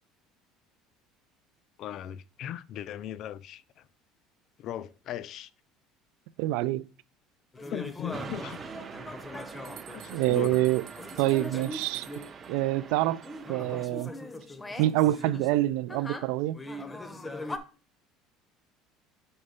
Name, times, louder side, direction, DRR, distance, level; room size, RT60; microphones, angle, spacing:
voice 1, 1.8-3.9 4.6-5.5 7.7-8.6 9.9-10.6, left 11 dB, 45° left, 0.3 m, -38 dB
voice 2, 6.4-6.8 10.1-10.8 11.2-12.1 12.5-13.2 13.5-14.1 14.8-16.6, right 16 dB, 75° right, 0.3 m, -26 dB
sound 1, 7.5-12.8 13.2-17.6, left 1 dB, 10° left, 0.6 m, -41 dB
sound 2, 8.1-13.9, right 6 dB, 25° right, 0.6 m, -44 dB
sound 3, 9.0-9.1 9.3-12.5, right 11 dB, 55° right, 0.8 m, -51 dB
5.4 x 4.3 x 4.9 m
cardioid pair, 150°, 0 cm